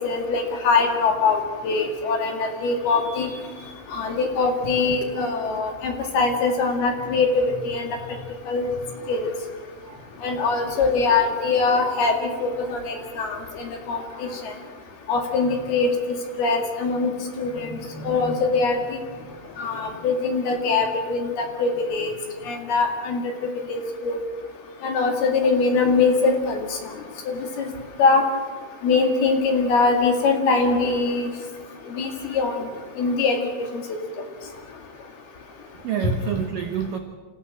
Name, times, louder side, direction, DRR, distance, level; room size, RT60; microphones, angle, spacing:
voice 1, 0.0-3.3 3.9-7.9 8.5-8.7 9.1-9.3 10.2-14.5 15.1-15.9 16.4-17.1 17.4-17.8 18.0-18.8 19.6-22.1 22.5-23.3 23.7-24.2 24.8-26.7 27.3-27.7 28.0-28.2 28.8-31.3 32.0-32.6 33.0-33.4, left 4 dB, 60° left, 3 dB, 3.8 m, -22 dB
voice 2, 13.9-14.7 35.8-37.0, right 9 dB, 75° right, 5 dB, 2.0 m, -30 dB
27.0 x 15.0 x 7.6 m, 1.4 s
omnidirectional pair, 5.6 m